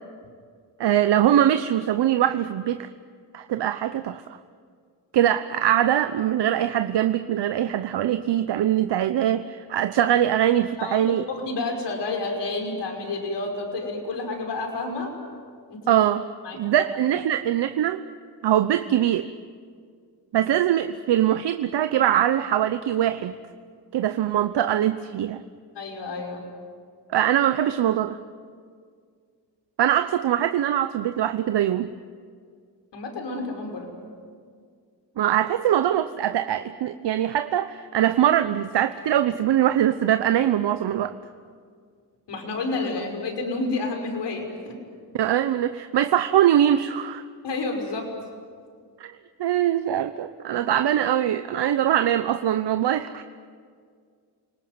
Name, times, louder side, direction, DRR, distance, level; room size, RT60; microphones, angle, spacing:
voice 1, 0.8-2.9 3.3-4.2 5.1-11.2 15.9-16.3 16.6-18.0 18.4-19.3 20.3-23.3 23.9-25.4 27.1-28.2 29.8-31.9 35.2-41.1 45.1-47.2 49.0-49.1 49.4-53.2, right 11 dB, 70° right, 10 dB, 1.0 m, -22 dB
voice 2, 11.3-15.1 15.7-16.0 16.4-16.8 25.7-26.4 32.9-33.9 42.3-44.8 47.4-48.1, left 3 dB, 70° left, 3 dB, 5.7 m, -30 dB
29.5 x 19.5 x 9.5 m, 2.1 s
cardioid pair, 70°, 43 cm